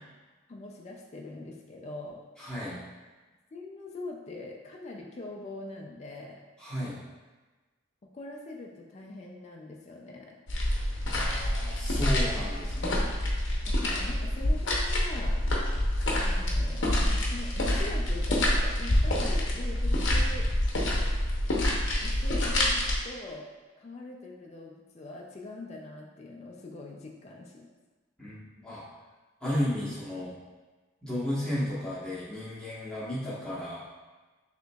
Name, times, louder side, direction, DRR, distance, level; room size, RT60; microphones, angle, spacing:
voice 1, 0.5-2.2 3.5-6.4 8.1-10.4 13.7-15.4 16.2-20.5 22.0-23.5 23.8-27.7, left 2 dB, 30° left, -1 dB, 0.3 m, -43 dB
voice 2, 2.4-2.8 6.6-7.0 11.1-13.0 28.2-28.8 29.4-30.3 31.0-33.9, left 1 dB, 5° left, -10 dB, 1.1 m, -33 dB
sound 1, 10.5-23.0, left 1 dB, 60° left, 0.7 m, -27 dB
6.0 x 2.9 x 2.3 m, 1.3 s
head